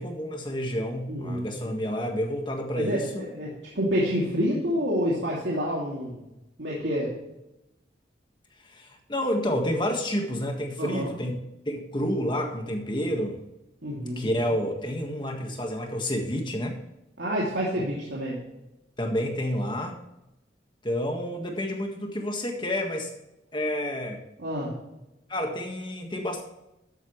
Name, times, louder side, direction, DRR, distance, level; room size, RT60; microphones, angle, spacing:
voice 1, 0.0-3.2 8.6-11.3 11.7-13.4 14.2-16.8 19.0-20.0 20.8-23.1 23.5-24.2 25.3-26.4, equal, 25° left, 3 dB, 1.6 m, -29 dB
voice 2, 1.1-1.5 2.8-6.2 6.6-7.1 10.8-11.1 13.8-14.4 17.2-18.4 24.4-24.7, equal, 75° right, -5 dB, 2.8 m, -28 dB
13.5 x 8.8 x 3.2 m, 0.90 s
head